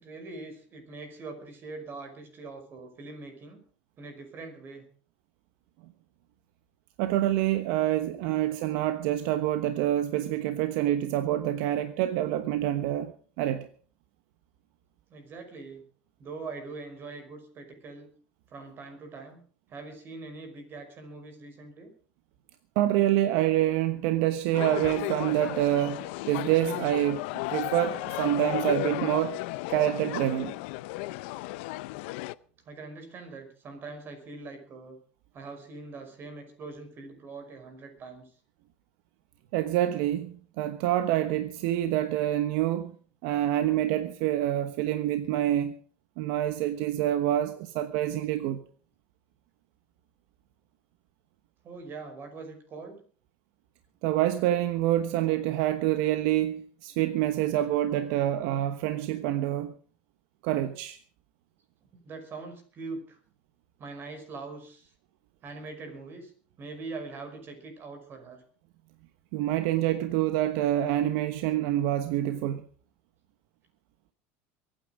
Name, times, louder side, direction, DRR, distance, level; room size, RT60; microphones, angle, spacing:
voice 1, 0.0-3.6 4.0-4.9 15.1-15.8 16.2-18.1 18.5-19.4 19.7-21.9 32.7-35.0 35.3-38.3 51.6-53.0 61.9-63.2 63.8-64.9 65.4-66.3 66.6-68.4, right 3 dB, 35° right, 5.5 m, -42 dB
voice 2, 7.0-13.1 13.4-13.7 22.7-27.2 27.5-29.4 29.7-30.5 39.5-42.9 43.2-45.7 46.2-48.6 54.0-59.7 60.4-61.0 69.3-72.6, right 13 dB, 70° right, 1.2 m, -27 dB
sound 1, 24.5-32.3, left 20 dB, 75° left, 0.6 m, -34 dB
23.0 x 9.4 x 5.2 m
supercardioid pair, 120°, 6 cm